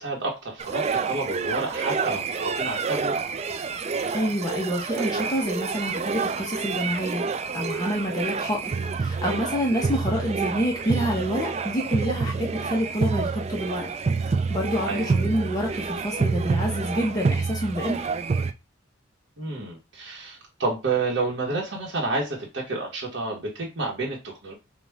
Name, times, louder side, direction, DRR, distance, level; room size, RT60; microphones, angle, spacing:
voice 1, 0.0-3.1 14.9-15.1 19.4-24.5, right 3 dB, 75° right, -3 dB, 1.4 m, -30 dB
sound 1, 0.6-18.5, right 4 dB, 35° right, 0.3 m, -28 dB
voice 2, 4.1-7.3 7.5-13.9 14.2-18.0, equal, 20° left, -1 dB, 1.0 m, -28 dB
4.9 x 2.6 x 3.5 m, 0.26 s
head